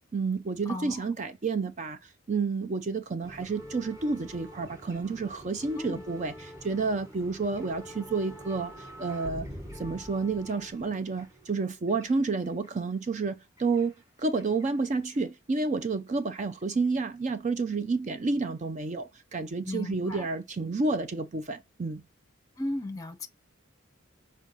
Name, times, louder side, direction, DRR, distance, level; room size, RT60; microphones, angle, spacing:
voice 1, 0.1-9.5 9.7-13.9 14.2-22.0, right 4 dB, 35° right, 0.4 m, -30 dB
voice 2, 0.7-1.0 5.8-6.0 19.6-20.3 22.6-23.3, left 1 dB, 15° left, 0.7 m, -35 dB
sound 1, 3.2-12.7 13.6-14.7 14.9-15.2 16.1-16.2, equal, 15° right, 1.2 m, -46 dB
6.1 x 4.4 x 4.0 m
head